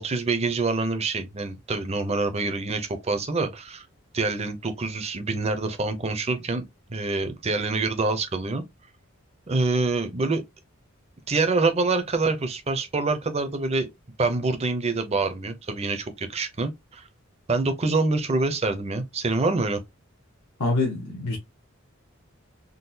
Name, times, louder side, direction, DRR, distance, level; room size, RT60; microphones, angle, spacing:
voice 1, 0.0-3.9 4.1-6.6 6.9-8.6 9.5-10.4 11.3-13.9 14.2-17.0 17.5-19.8, right 3 dB, 30° right, 0.6 m, -26 dB
voice 2, 20.6-21.4, left 2 dB, 85° left, 1.0 m, -25 dB
3.8 x 2.3 x 2.7 m
head